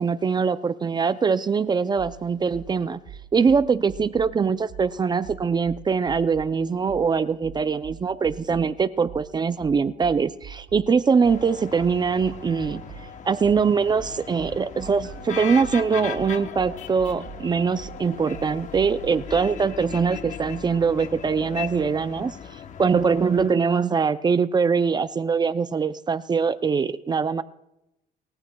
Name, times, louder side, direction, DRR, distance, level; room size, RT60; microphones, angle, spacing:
voice 1, 0.0-3.0 3.3-12.8 13.2-22.3 22.8-27.4, right 5 dB, 25° right, 13 dB, 0.4 m, -22 dB
sound 1, 2.0-2.1 2.5-2.7 3.0-4.3 4.7-4.9 5.2-6.5 6.9-7.0 7.4-8.7 9.0-13.0 13.4-19.4, right 9 dB, 65° right, 1.9 m, -42 dB
sound 2, 11.2-23.5, left 8 dB, 45° left, 1.0 m, -38 dB
29.5 x 14.5 x 2.3 m, 0.89 s
cardioid pair, 110°, 17 cm